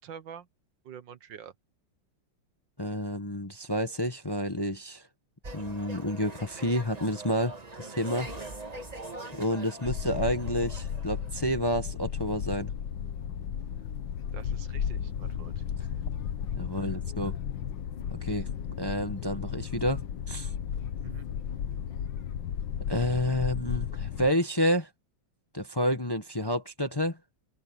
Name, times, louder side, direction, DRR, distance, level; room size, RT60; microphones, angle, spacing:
voice 1, 0.0-0.5 0.8-1.5 14.3-15.6 16.7-17.3 21.0-21.3, right 8 dB, 75° right, 1.9 m, -47 dB
voice 2, 2.8-5.0 5.5-8.3 9.3-12.7 16.5-17.4 18.1-18.5 18.8-20.5 22.9-24.9 25.5-27.2, equal, 15° left, 1.1 m, -29 dB
sound 1, 5.4-11.6, right 2 dB, 25° right, 1.4 m, -43 dB
sound 2, 9.8-24.3, left 8 dB, 80° left, 1.8 m, -34 dB
open air
omnidirectional pair, 2.0 m